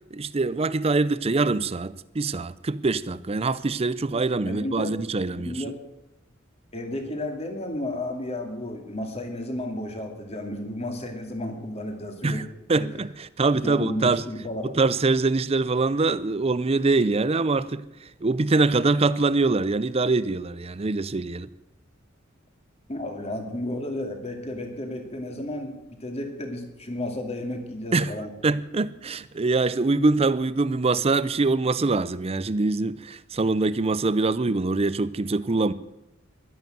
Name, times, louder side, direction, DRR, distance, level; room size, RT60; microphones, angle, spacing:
voice 1, 0.1-5.6 12.2-14.2 14.6-17.8 18.2-21.5 27.9-28.1 28.4-35.7, right 3 dB, 30° right, 0.5 m, -24 dB
voice 2, 4.4-4.9 5.4-5.7 6.7-12.4 12.8-12.9 13.5-14.7 22.9-25.7 26.0-28.3, left 1 dB, 30° left, 2.5 m, -32 dB
12.0 x 11.0 x 9.2 m
head